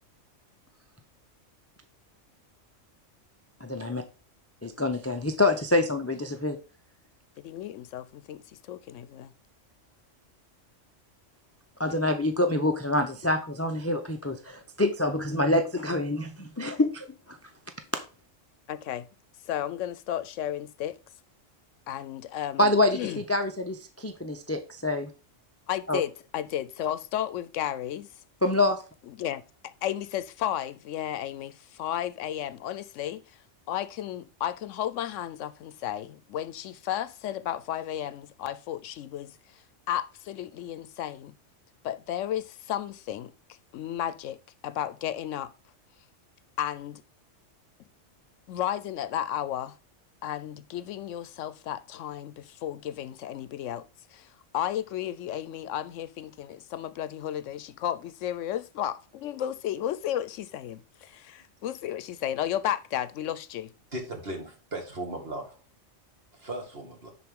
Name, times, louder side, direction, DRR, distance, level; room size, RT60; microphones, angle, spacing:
voice 1, 3.6-4.0 4.6-6.6 11.8-17.4 22.6-25.1 25.9-26.0 28.4-28.8, left 2 dB, 20° left, 0.4 m, -26 dB
voice 2, 7.4-8.4 8.7-9.3 18.7-19.1 19.5-21.0 21.9-23.2 25.7-28.1 29.2-33.2 33.7-39.3 39.9-41.3 41.8-43.3 43.7-44.4 44.6-45.5 46.6-47.0 48.5-49.8 50.2-53.8 54.1-54.3 54.5-63.7, left 11 dB, 80° left, 0.9 m, -33 dB
voice 3, 63.9-65.6 66.3-67.1, right 1 dB, 50° right, 2.3 m, -37 dB
10.5 x 4.1 x 3.6 m
omnidirectional pair, 1.3 m